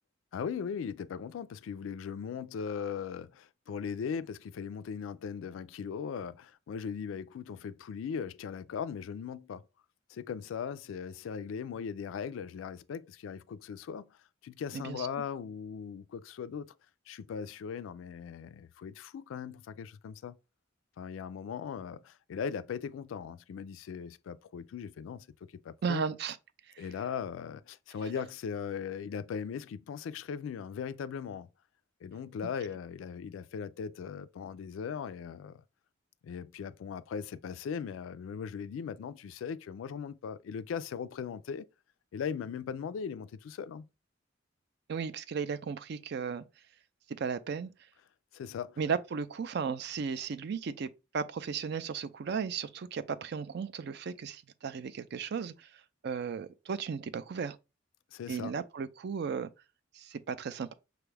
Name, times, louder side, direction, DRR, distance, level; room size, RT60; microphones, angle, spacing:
voice 1, 0.3-9.6 10.1-16.7 17.1-20.4 21.0-25.3 25.5-26.0 26.8-31.5 32.0-35.6 36.2-41.7 42.1-43.9 48.3-48.8 58.1-58.5, left 7 dB, 90° left, 0.3 m, -39 dB
voice 2, 14.7-15.1 25.8-26.4 26.7-26.8 44.9-46.4 47.2-47.7 48.8-50.9 51.1-55.7 56.0-57.6 58.3-59.5 59.9-60.7, right 6 dB, 55° right, 0.4 m, -35 dB
5.9 x 2.3 x 3.2 m
head